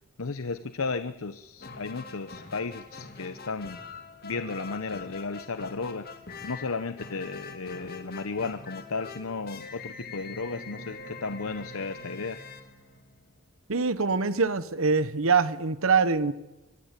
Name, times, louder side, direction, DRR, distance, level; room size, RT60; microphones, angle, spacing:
voice 1, 0.2-3.8 4.2-6.1 6.4-12.4, left 4 dB, 75° left, 11 dB, 0.8 m, -34 dB
sound 1, 1.6-13.5, left 4 dB, 45° left, 2.3 m, -44 dB
voice 2, 13.7-16.3, right 5 dB, 75° right, 13 dB, 1.0 m, -24 dB
24.5 x 18.5 x 8.2 m, 1.0 s
head